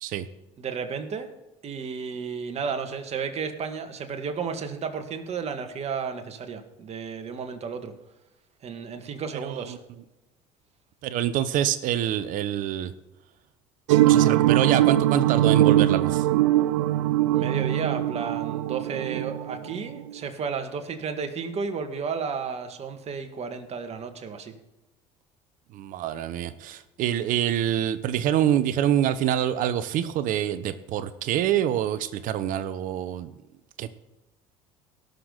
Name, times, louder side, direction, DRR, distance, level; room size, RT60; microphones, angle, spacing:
voice 1, 0.6-1.3 1.6-7.9 8.6-9.8 17.3-24.5, right 6 dB, 45° right, 6 dB, 1.9 m, -33 dB
voice 2, 11.0-12.9 14.1-16.2 25.7-33.3 33.8-33.9, right 11 dB, 60° right, 13 dB, 0.9 m, -26 dB
sound 1, 13.9-20.1, right 14 dB, 85° right, 0.4 m, -21 dB
18.0 x 6.8 x 4.0 m, 0.99 s
hypercardioid pair, 75°, 15 cm